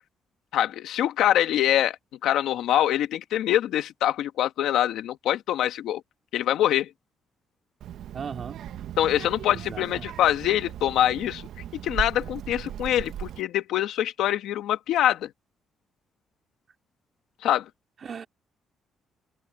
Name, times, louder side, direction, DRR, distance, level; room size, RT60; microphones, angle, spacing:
voice 1, 0.5-2.0 2.2-6.0 6.3-6.9 9.0-11.4 11.8-15.3 17.4-17.7, left 12 dB, 85° left, 1.8 m, -24 dB
Child speech kid speaking, 7.8-13.4, right 10 dB, 75° right, 1.4 m, -38 dB
voice 2, 8.1-8.7 9.5-10.1 18.0-18.3, right 6 dB, 50° right, 2.8 m, -38 dB
open air
cardioid pair, 90°, 0 cm